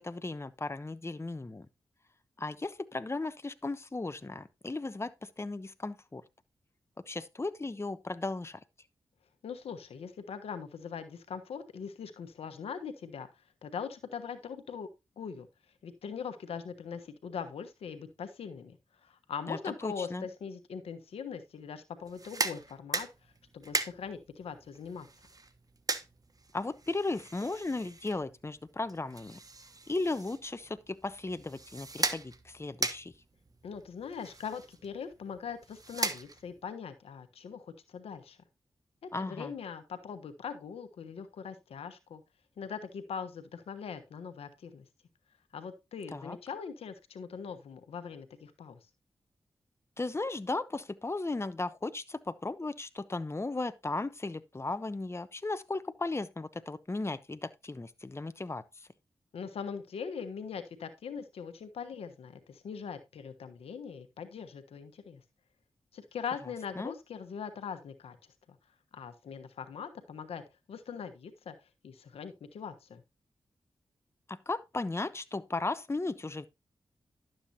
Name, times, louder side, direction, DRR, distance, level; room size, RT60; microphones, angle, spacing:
voice 1, 0.0-1.7 2.4-6.2 7.1-8.6 19.5-20.3 26.5-29.4 29.9-33.1 39.1-39.5 46.1-46.4 50.0-58.9 66.8-66.9 74.3-76.5, left 2 dB, 25° left, 0.9 m, -36 dB
voice 2, 9.4-13.3 13.6-14.9 15.2-15.5 15.8-23.1 23.5-25.1 33.6-38.4 39.0-42.2 42.6-44.8 45.5-48.8 59.3-65.2 65.9-68.2 68.9-70.4 70.7-71.5 71.8-73.0, left 6 dB, 85° left, 1.1 m, -41 dB
sound 1, 22.0-36.7, right 3 dB, 40° right, 1.2 m, -39 dB
11.5 x 7.7 x 2.8 m
cardioid pair, 40°, 10 cm